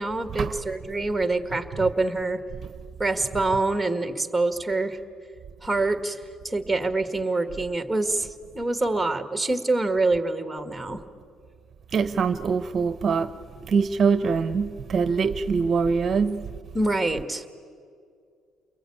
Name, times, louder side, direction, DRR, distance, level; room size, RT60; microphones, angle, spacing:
voice 1, 0.0-2.4 3.0-5.0 5.6-11.0 16.7-17.5, right 2 dB, 5° right, 1.7 m, -26 dB
voice 2, 11.9-13.3 13.7-16.4, right 5 dB, 40° right, 0.8 m, -23 dB
29.5 x 21.5 x 8.6 m
cardioid pair, 120°, 0 cm